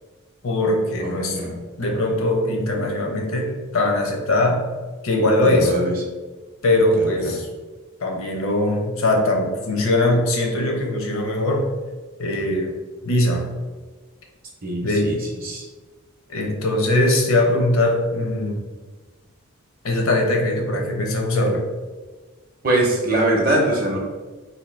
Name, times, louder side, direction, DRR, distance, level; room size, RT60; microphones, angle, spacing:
voice 1, 0.4-1.4 1.8-4.6 5.0-5.7 6.6-7.5 8.0-11.7 12.2-12.7 13.0-13.5 14.8-15.2 16.3-18.6 19.8-21.7, left 1 dB, 75° left, 1 dB, 0.7 m, -21 dB
voice 2, 1.0-1.5 5.4-5.9 7.0-7.3 14.6-15.6 22.6-24.0, right 1 dB, 40° right, -1 dB, 0.6 m, -23 dB
2.8 x 2.6 x 4.3 m, 1.3 s
head